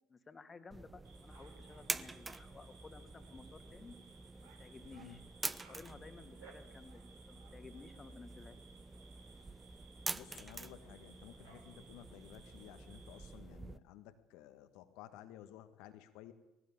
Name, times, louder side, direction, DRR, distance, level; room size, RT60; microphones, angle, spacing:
voice 1, 0.1-3.9 4.6-5.2 5.7-8.6, left 4 dB, 25° left, 9 dB, 2.4 m, -55 dB
sound 1, 0.7-13.8, right 3 dB, 15° right, 0.9 m, -47 dB
sound 2, 1.0-13.4, right 5 dB, 75° right, 3.5 m, -62 dB
voice 2, 10.1-16.3, left 12 dB, 65° left, 10 dB, 1.7 m, -55 dB
20.0 x 18.0 x 8.8 m, 0.98 s
hypercardioid pair, 65°, 0 cm